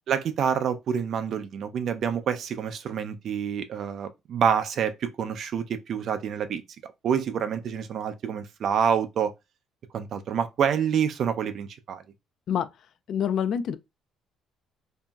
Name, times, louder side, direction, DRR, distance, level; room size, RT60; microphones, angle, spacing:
voice 1, 0.1-9.3 9.9-12.0, right 7 dB, 55° right, 0.4 m, -27 dB
voice 2, 13.1-13.8, left 8 dB, 60° left, 0.3 m, -26 dB
2.9 x 2.6 x 2.2 m
cardioid pair, 95°, 0 cm